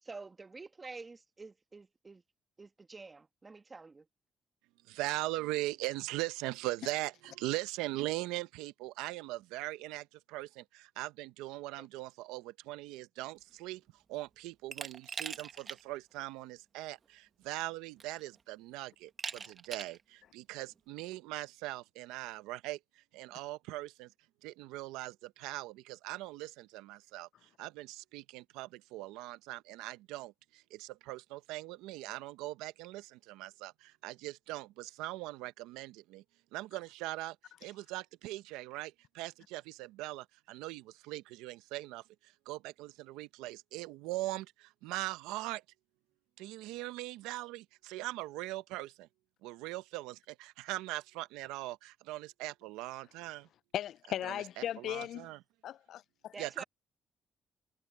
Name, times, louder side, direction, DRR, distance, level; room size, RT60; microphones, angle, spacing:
voice 1, 0.0-2.2 2.6-4.1 56.3-56.6, right 3 dB, 35° right, 1.8 m, -48 dB
voice 2, 4.9-24.1 24.4-36.2 36.5-37.4 37.6-45.6 46.4-49.1 49.4-53.5 54.2-55.4 56.4-56.6, right 18 dB, 90° right, 0.8 m, -41 dB
Glass, 14.7-15.8 16.2-16.3 17.4-17.5 18.0-18.4 19.2-20.0, right 5 dB, 50° right, 1.7 m, -41 dB
voice 3, 53.7-55.3 55.6-56.3, left 11 dB, 70° left, 0.5 m, -37 dB
supercardioid pair, 55°, 0 cm